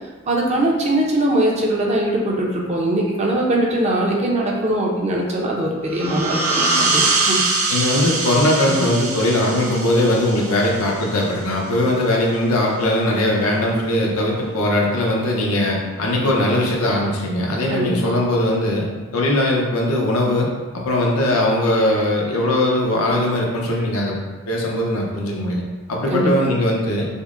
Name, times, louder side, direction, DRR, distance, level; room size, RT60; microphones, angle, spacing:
voice 1, 0.3-7.4 7.6-8.1 17.7-18.1 26.1-26.5, right 1 dB, 30° right, -2 dB, 0.5 m, -21 dB
sound 1, 5.9-11.3, right 3 dB, 75° right, 0.5 m, -23 dB
voice 2, 7.7-18.9 19.1-20.5 20.7-24.2 24.5-25.6 25.9-27.1, left 1 dB, 85° left, -2 dB, 0.7 m, -20 dB
5.3 x 2.0 x 2.5 m, 1.3 s
head